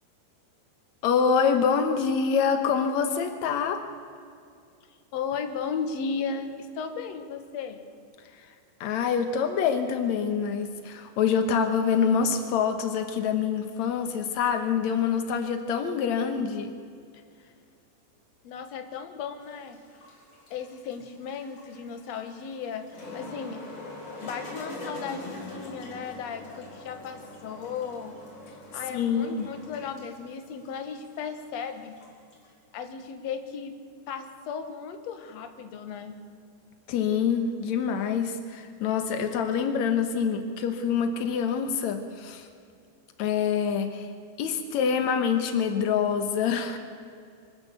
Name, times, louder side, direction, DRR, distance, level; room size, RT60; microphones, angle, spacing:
voice 1, 1.0-3.8 8.3-8.5 8.8-16.7 28.9-29.5 36.9-42.5 43.2-44.1 44.4-46.8, left 6 dB, 90° left, 7 dB, 1.6 m, -26 dB
voice 2, 5.1-7.8 18.4-19.8 20.5-23.6 24.2-28.2 28.7-32.0 32.7-33.8 34.1-36.2, left 6 dB, 65° left, 7 dB, 1.7 m, -35 dB
sound 1, 19.4-32.5, left 2 dB, 35° left, 5.0 m, -44 dB
24.5 x 13.5 x 8.3 m, 2.4 s
omnidirectional pair, 5.0 m